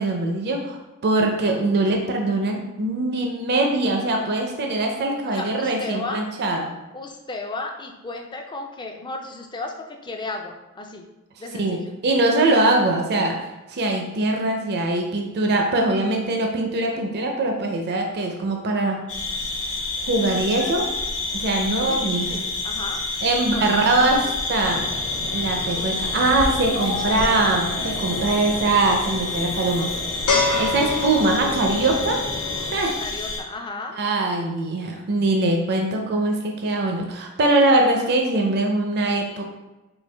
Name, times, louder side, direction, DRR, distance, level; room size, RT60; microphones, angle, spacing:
voice 1, 0.0-6.6 11.6-13.4 13.7-19.1 20.1-20.9 21.3-22.4 23.2-24.8 25.3-29.9 30.6-32.2 32.7-33.0 34.0-39.4, right 2 dB, 50° right, 2 dB, 0.5 m, -22 dB
voice 2, 5.3-6.3 6.9-11.1 11.4-12.0 21.9-23.0 23.4-24.2 26.8-27.3 33.0-34.0, left 3 dB, 20° left, 3 dB, 0.4 m, -34 dB
sound 1, 19.1-33.4, left 3 dB, 65° left, 0.7 m, -29 dB
sound 2, 24.6-32.7, left 3 dB, 80° left, 1.0 m, -29 dB
4.4 x 2.6 x 3.3 m, 1.0 s
head